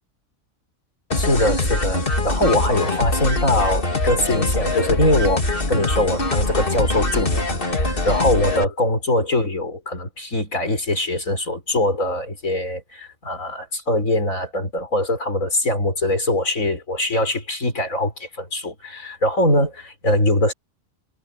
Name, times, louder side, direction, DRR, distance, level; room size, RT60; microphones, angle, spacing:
sound 1, 1.1-8.7, left 2 dB, 40° left, 2.6 m, -23 dB
voice 1, 1.2-20.5, left 1 dB, 80° left, 6.2 m, -22 dB
omnidirectional pair, 1.4 m